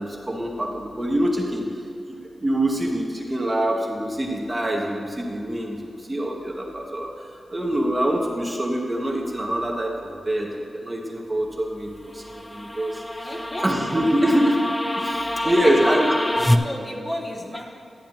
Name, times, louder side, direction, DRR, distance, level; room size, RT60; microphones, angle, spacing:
voice 1, 0.0-1.7 2.0-7.1 7.5-13.3 13.6-14.7 15.0-16.2 16.9-17.0, right 1 dB, 15° right, 0 dB, 1.0 m, -25 dB
sound 1, 12.1-16.6, left 1 dB, 10° left, 0.4 m, -26 dB
voice 2, 13.2-13.7 15.1-16.0 16.3-17.7, left 1 dB, 30° left, 0 dB, 0.9 m, -33 dB
12.0 x 8.3 x 2.9 m, 2.6 s
wide cardioid pair, 115°, 0 cm